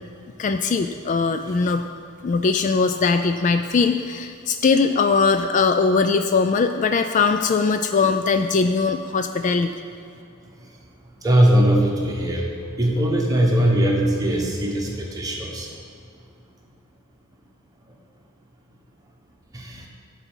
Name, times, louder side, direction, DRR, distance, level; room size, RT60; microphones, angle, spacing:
voice 1, 0.4-1.9 2.2-9.7, left 4 dB, 35° left, 7 dB, 0.3 m, -20 dB
voice 2, 11.2-12.4 12.8-15.7 19.5-19.8, right 1 dB, 20° right, -1 dB, 1.3 m, -20 dB
10.5 x 4.7 x 7.2 m, 2.4 s
head